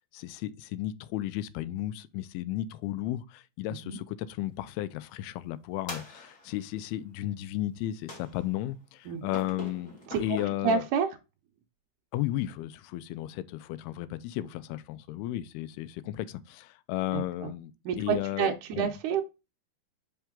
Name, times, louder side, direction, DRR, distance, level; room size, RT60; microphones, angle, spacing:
voice 1, 0.1-10.8 12.1-18.9, left 14 dB, 90° left, 2.6 m, -34 dB
sound 1, 5.9-6.7 8.1-8.7 9.3-10.5, left 1 dB, 30° left, 1.7 m, -43 dB
voice 2, 10.6-11.1 17.1-17.5 17.9-19.2, right 6 dB, 80° right, 1.8 m, -29 dB
5.8 x 5.5 x 3.6 m
omnidirectional pair, 4.4 m